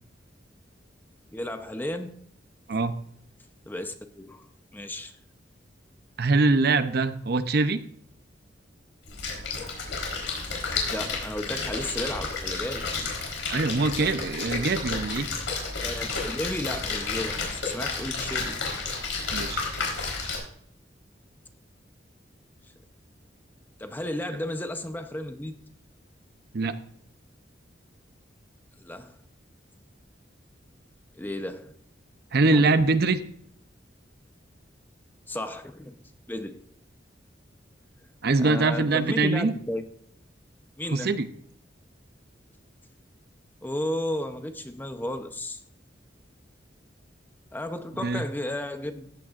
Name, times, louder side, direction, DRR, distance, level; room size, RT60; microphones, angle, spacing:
voice 1, 1.3-2.3 3.7-5.1 10.9-12.9 15.8-18.6 23.8-25.6 28.8-29.2 31.2-31.7 32.4-32.9 35.3-36.0 36.3-36.6 38.4-39.9 40.8-41.1 43.6-45.6 47.5-49.1, left 1 dB, 10° left, 0.7 m, -33 dB
voice 2, 6.2-7.8 13.5-15.3 19.3-19.7 26.5-26.8 32.3-33.2 38.2-39.5 40.9-41.3 48.0-48.2, right 3 dB, 55° right, 0.6 m, -23 dB
Splash splatter, 9.1-20.4, left 4 dB, 85° left, 3.9 m, -31 dB
14.5 x 9.1 x 2.5 m
head